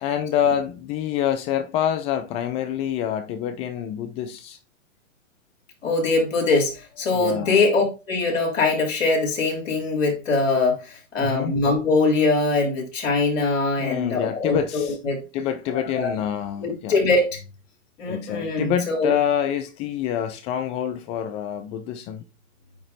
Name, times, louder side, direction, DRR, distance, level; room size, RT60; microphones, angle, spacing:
voice 1, 0.0-4.6 6.9-7.7 11.2-11.6 13.8-15.0 15.3-17.0 18.0-22.2, left 9 dB, 15° left, 0.3 m, -27 dB
voice 2, 5.8-15.2 15.7-16.1 16.6-17.5 18.0-19.1, left 3 dB, 75° left, 3.5 m, -22 dB
8.9 x 3.0 x 4.1 m
hypercardioid pair, 125°, 39 cm